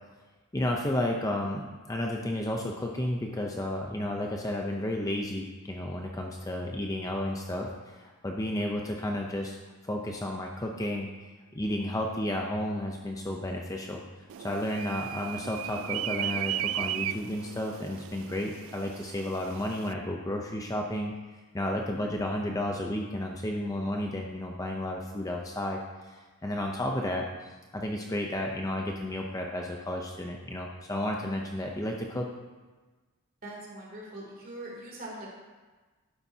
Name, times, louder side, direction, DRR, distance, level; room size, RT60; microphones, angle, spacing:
voice 1, 0.5-9.6 9.8-11.1 11.5-21.1 21.5-32.3, left 1 dB, 15° left, 0 dB, 0.6 m, -32 dB
sound 1, 14.3-19.9, right 12 dB, 60° right, 0.3 m, -36 dB
voice 2, 33.4-35.3, right 1 dB, 40° right, -4 dB, 2.9 m, -42 dB
11.5 x 9.6 x 2.8 m, 1.3 s
head